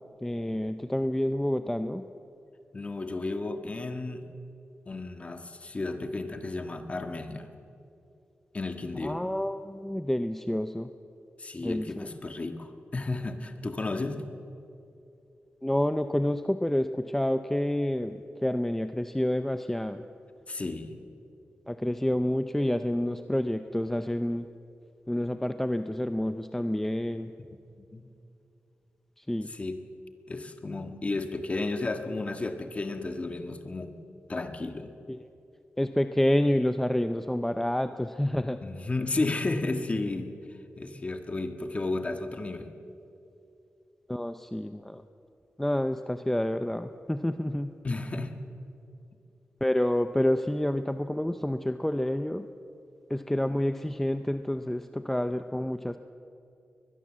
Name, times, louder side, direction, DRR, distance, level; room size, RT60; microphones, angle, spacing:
voice 1, 0.2-2.0 9.0-10.9 11.6-12.1 15.6-20.0 21.7-24.5 25.1-27.3 29.2-29.5 35.1-35.2 35.8-38.6 44.1-45.0 45.6-47.7 49.6-52.5 53.1-56.0, left 1 dB, 5° left, 9 dB, 0.5 m, -28 dB
voice 2, 2.7-4.3 4.9-7.5 8.5-9.2 11.4-14.2 20.5-21.0 27.5-28.1 29.5-29.8 30.3-34.0 34.3-34.9 38.6-40.4 40.7-42.7 47.8-48.4, left 2 dB, 30° left, 6 dB, 1.6 m, -33 dB
22.0 x 20.5 x 7.5 m, 2.7 s
wide cardioid pair, 145°, 4 cm